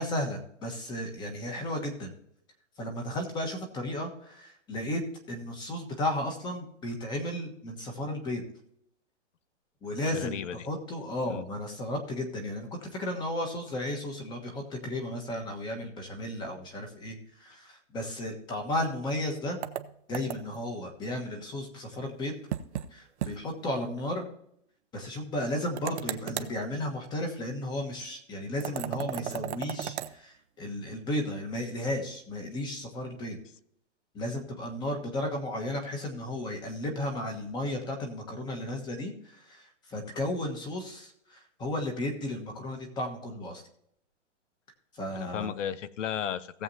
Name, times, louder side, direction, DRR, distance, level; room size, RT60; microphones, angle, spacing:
voice 1, 0.0-2.1 2.8-8.4 9.8-10.4 10.6-19.6 20.1-22.3 22.9-24.3 24.9-33.4 34.1-43.6 44.9-45.5, left 1 dB, 10° left, 3 dB, 1.3 m, -34 dB
voice 2, 10.1-10.5 11.3-11.4 45.1-46.6, left 9 dB, 75° left, 17 dB, 0.8 m, -34 dB
sound 1, 19.6-20.7 22.5-22.9 23.2-23.3 23.7-23.8 25.8-26.6 28.6-30.1, right 11 dB, 65° right, 0.8 m, -35 dB
17.5 x 7.5 x 2.8 m, 0.71 s
hypercardioid pair, 165°, 37 cm